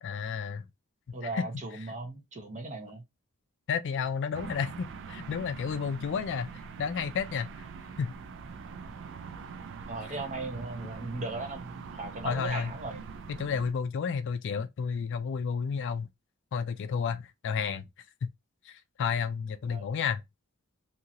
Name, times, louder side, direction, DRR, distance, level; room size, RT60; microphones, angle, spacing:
voice 1, 0.0-0.6 1.2-1.4 3.7-6.5 6.8-7.6 8.0-8.1 12.2-12.7 13.4-16.1 16.5-17.8 18.2-18.3 18.7-20.2, left 6 dB, 55° left, 0.3 m, -31 dB
voice 2, 1.1-3.0 6.2-6.3 9.9-13.0 19.7-19.9, right 2 dB, 35° right, 0.9 m, -38 dB
sound 1, 4.3-13.7, right 5 dB, 60° right, 0.4 m, -43 dB
2.7 x 2.5 x 2.8 m
head